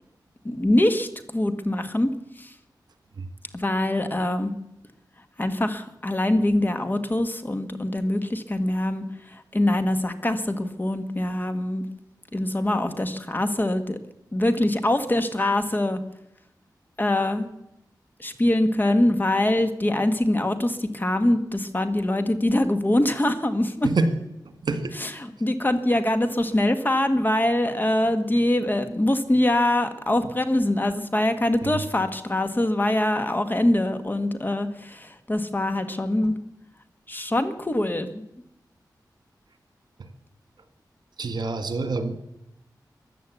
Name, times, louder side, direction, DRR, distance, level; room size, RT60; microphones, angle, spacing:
voice 1, 0.4-2.1 2.4-2.5 3.5-4.5 5.4-11.8 12.3-14.0 14.3-16.0 17.0-17.5 18.2-23.9 24.9-36.4 37.1-38.2, left 1 dB, 25° left, 9 dB, 1.5 m, -23 dB
voice 2, 24.6-24.9 31.6-31.7 41.2-42.2, right 3 dB, 75° right, 9 dB, 1.8 m, -26 dB
15.5 x 11.0 x 8.2 m, 0.83 s
wide cardioid pair, 90°, 7 cm